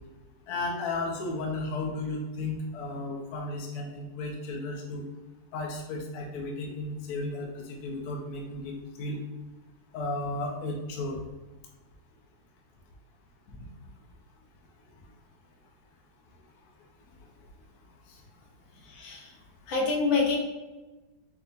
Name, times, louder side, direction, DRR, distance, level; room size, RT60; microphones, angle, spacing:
voice 1, 0.5-5.0 5.5-9.2 9.9-11.2 18.1-18.2, left 2 dB, 65° left, -1 dB, 1.2 m, -34 dB
voice 2, 18.7-20.4, left 4 dB, 80° left, -1 dB, 1.6 m, -28 dB
5.5 x 2.7 x 2.6 m, 1.1 s
omnidirectional pair, 2.1 m